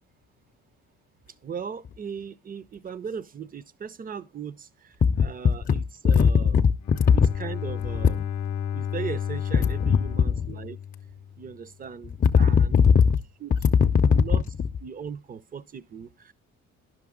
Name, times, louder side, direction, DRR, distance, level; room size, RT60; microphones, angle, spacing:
voice 1, 1.4-4.7 5.2-6.5 7.1-8.3 8.7-10.8 11.4-12.8 13.4-13.5 14.1-14.4 14.8-16.3, right 7 dB, 30° right, 0.5 m, -38 dB
voice 2, 5.0-7.3 9.8-10.5 12.2-13.2 13.6-14.4, left 6 dB, 30° left, 0.5 m, -20 dB
Bowed string instrument, 6.8-11.6, left 9 dB, 65° left, 0.7 m, -32 dB
10.5 x 6.0 x 3.6 m
cardioid pair, 90°, 30 cm